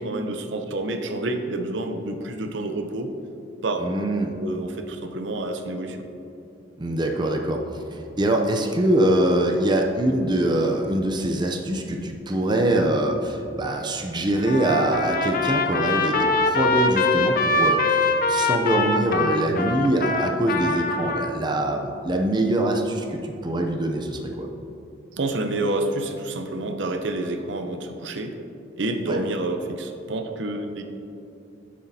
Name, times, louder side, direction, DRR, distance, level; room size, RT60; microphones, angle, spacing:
voice 1, 0.0-3.1 3.6-3.8 4.4-6.0 25.1-28.4 28.8-30.8, right 2 dB, 75° right, 5 dB, 0.7 m, -28 dB
voice 2, 3.8-4.3 6.8-7.6 7.9-24.5 29.1-29.2, right 1 dB, 25° right, 2 dB, 0.5 m, -23 dB
Trumpet, 14.5-21.3, left 3 dB, 50° left, 0.6 m, -23 dB
9.9 x 7.5 x 2.8 m, 2.7 s
head